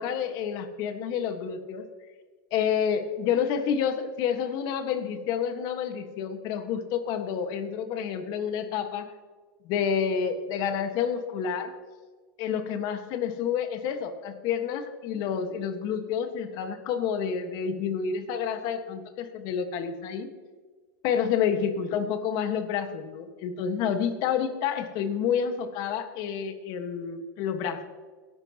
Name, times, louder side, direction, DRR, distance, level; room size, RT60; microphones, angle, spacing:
voice 1, 0.0-1.9 2.5-9.1 9.6-11.7 12.4-20.3 21.0-27.8, left 7 dB, 40° left, 7 dB, 1.5 m, -29 dB
21.5 x 11.5 x 3.0 m, 1.4 s
supercardioid pair, 155°, 11 cm